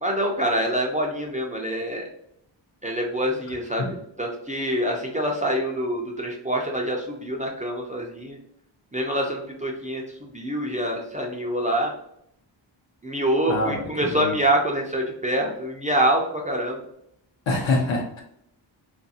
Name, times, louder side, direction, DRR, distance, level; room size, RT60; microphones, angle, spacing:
voice 1, 0.0-2.0 2.8-8.4 8.9-11.9 13.0-16.8, right 1 dB, 20° right, -1 dB, 0.3 m, -26 dB
voice 2, 13.5-14.3 17.5-18.2, left 2 dB, 70° left, 0 dB, 0.8 m, -25 dB
2.5 x 2.3 x 2.6 m, 0.73 s
wide cardioid pair, 120°, 47 cm